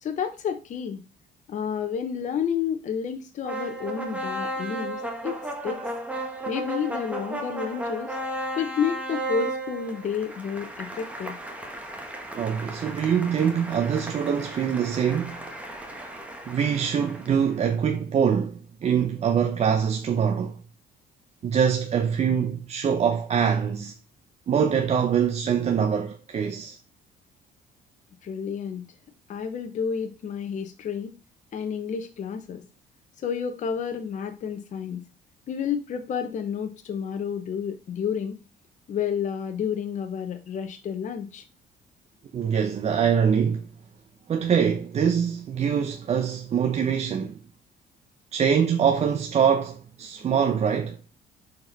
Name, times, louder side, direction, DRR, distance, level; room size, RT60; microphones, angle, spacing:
voice 1, 0.0-1.0 1.5-5.4 5.6-5.8 6.5-8.2 8.5-11.4 28.2-28.8 29.3-31.1 31.5-32.6 33.2-35.0 35.5-38.3 38.9-41.4, left 7 dB, 45° left, 0.9 m, -30 dB
sound 1, 3.4-17.6, right 1 dB, 10° right, 1.4 m, -34 dB
voice 2, 12.3-15.4 16.5-20.6 21.4-23.9 24.5-26.8 42.3-43.7 44.3-47.4 48.3-51.0, right 7 dB, 40° right, 0.7 m, -24 dB
6.4 x 4.5 x 4.0 m
cardioid pair, 110°, 17 cm